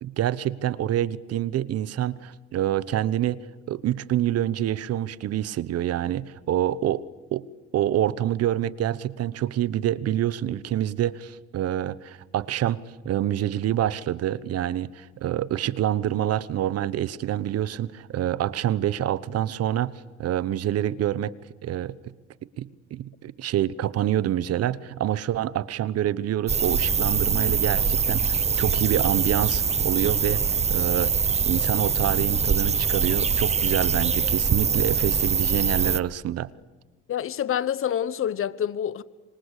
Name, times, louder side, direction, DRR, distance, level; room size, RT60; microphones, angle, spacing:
voice 1, 0.0-3.4 3.7-7.1 7.3-7.5 7.7-21.3 21.6-22.0 22.6-31.1 31.4-36.5, right 12 dB, 55° right, 1.1 m, -27 dB
sound 1, 26.5-36.0, right 6 dB, 20° right, 0.8 m, -23 dB
voice 2, 37.1-39.0, left 9 dB, 45° left, 1.2 m, -27 dB
26.0 x 26.0 x 8.4 m
cardioid pair, 105°, 30 cm